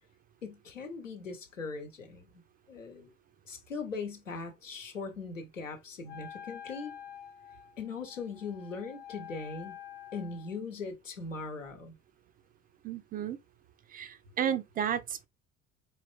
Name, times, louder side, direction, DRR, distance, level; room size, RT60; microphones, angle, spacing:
voice 1, 0.4-2.3 2.7-3.1 3.5-6.9 7.8-9.7 10.1-12.0, left 4 dB, 85° left, 1.0 m, -40 dB
Wind instrument woodwind instrument, 6.1-10.6, left 10 dB, 25° left, 0.6 m, -48 dB
voice 2, 12.8-13.4 13.9-15.3, right 9 dB, 25° right, 0.4 m, -33 dB
4.4 x 3.8 x 2.3 m
figure-of-eight pair, 65°, 37 cm